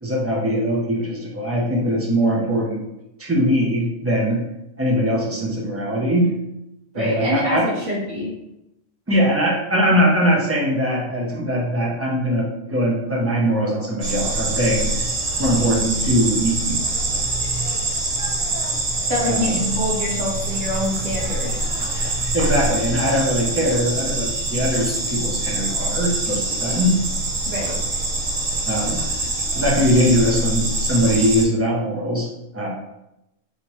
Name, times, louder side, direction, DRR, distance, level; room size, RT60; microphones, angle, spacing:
voice 1, 0.0-2.8 3.2-4.4 4.8-6.4 6.9-7.7 9.1-15.1 15.4-16.8 19.3-19.6 21.9-27.0 28.6-29.0 29.5-32.7, equal, 20° right, -3 dB, 0.4 m, -21 dB
voice 2, 6.9-8.3 19.1-21.6 27.5-27.8, left 1 dB, 65° right, -6 dB, 1.7 m, -25 dB
sound 1, 14.0-31.4, right 2 dB, 85° right, 1.3 m, -24 dB
3.6 x 3.1 x 2.9 m, 0.89 s
omnidirectional pair, 1.3 m